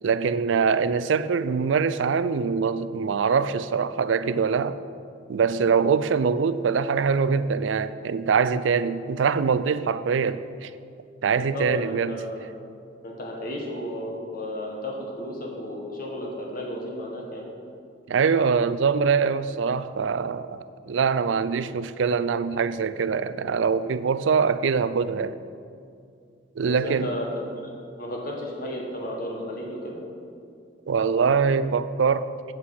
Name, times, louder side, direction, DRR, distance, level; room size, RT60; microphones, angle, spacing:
voice 1, 0.0-4.8 5.3-10.7 11.2-12.2 18.1-25.4 26.6-27.2 30.9-32.3, right 5 dB, 90° right, 0.4 m, -23 dB
voice 2, 11.3-12.5 13.0-17.4 26.7-27.3 27.6-30.0, equal, 50° left, 1.4 m, -33 dB
8.7 x 7.7 x 5.7 m
head